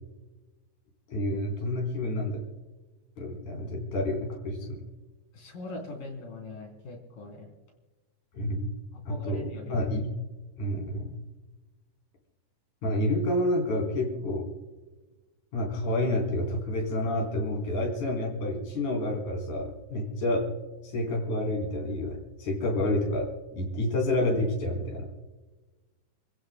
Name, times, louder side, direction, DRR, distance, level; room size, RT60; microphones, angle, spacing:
voice 1, 1.1-2.4 3.2-4.9 8.3-8.7 9.1-10.1 10.6-11.2 12.8-14.5 15.5-20.5 20.8-25.1, left 1 dB, 65° left, 0 dB, 5.3 m, -29 dB
voice 2, 5.3-7.5 8.9-9.8, left 2 dB, 85° left, 0 dB, 5.3 m, -41 dB
29.5 x 15.5 x 2.2 m, 1.2 s
omnidirectional pair, 3.7 m